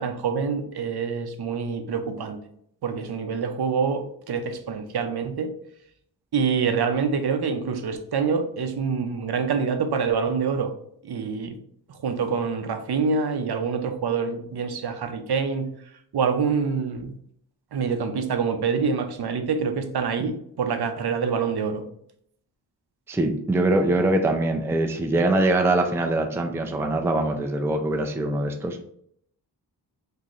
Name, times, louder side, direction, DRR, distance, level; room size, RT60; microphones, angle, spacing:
voice 1, 0.0-2.4 2.8-5.5 6.3-10.7 11.0-11.6 12.0-15.7 16.1-17.1 17.7-21.9, right 5 dB, 65° right, 7 dB, 0.6 m, -26 dB
voice 2, 23.1-28.9, right 2 dB, 5° right, 4 dB, 0.4 m, -23 dB
3.8 x 2.7 x 3.0 m, 0.68 s
wide cardioid pair, 90°, 42 cm